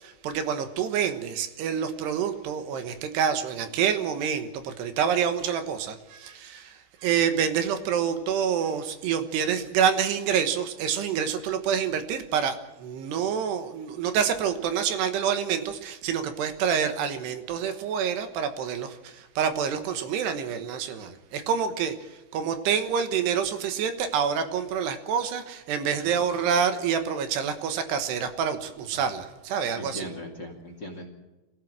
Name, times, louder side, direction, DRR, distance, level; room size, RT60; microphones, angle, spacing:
voice 1, 0.0-30.1, right 7 dB, 75° right, 8 dB, 3.3 m, -27 dB
voice 2, 29.8-31.1, left 1 dB, 35° left, 4 dB, 2.1 m, -39 dB
23.5 x 16.0 x 7.6 m, 1.1 s
omnidirectional pair, 4.9 m